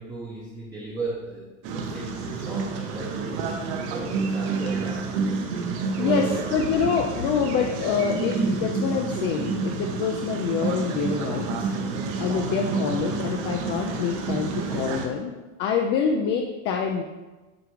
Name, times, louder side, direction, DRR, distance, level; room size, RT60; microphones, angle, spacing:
voice 1, 0.0-3.2 3.9-5.3 6.0-6.7, right 3 dB, 10° right, -6 dB, 0.7 m, -36 dB
sound 1, 1.6-15.1, right 4 dB, 55° right, 1.0 m, -29 dB
voice 2, 6.0-11.7 12.2-15.3 15.6-17.0, left 6 dB, 30° left, 2 dB, 0.3 m, -26 dB
8.5 x 3.6 x 3.1 m, 1.2 s
supercardioid pair, 130°, 39 cm